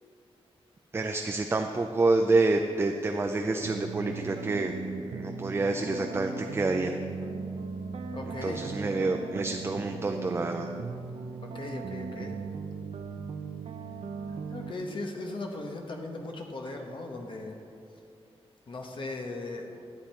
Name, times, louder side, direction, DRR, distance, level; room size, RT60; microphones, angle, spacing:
voice 1, 0.9-4.7 5.1-7.0 8.4-10.7, right 3 dB, 25° right, 4 dB, 0.4 m, -28 dB
sound 1, 3.6-14.7, right 5 dB, 70° right, 0.6 m, -38 dB
voice 2, 8.1-8.6 11.4-12.3 14.5-17.6 18.7-19.8, left 2 dB, 50° left, 2 dB, 1.0 m, -38 dB
12.5 x 8.7 x 4.4 m, 2.6 s
wide cardioid pair, 165°, 11 cm